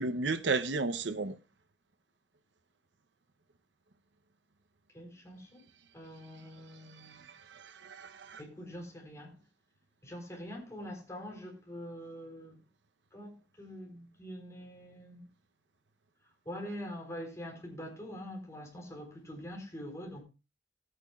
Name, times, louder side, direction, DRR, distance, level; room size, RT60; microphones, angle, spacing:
voice 1, 0.0-1.4 7.0-8.4, right 3 dB, 80° right, 0.8 m, -34 dB
voice 2, 4.9-5.6 5.9-7.3 8.4-9.4 10.0-12.6 13.1-15.2 16.5-20.2, equal, 15° left, 4.1 m, -44 dB
19.0 x 8.8 x 2.4 m
head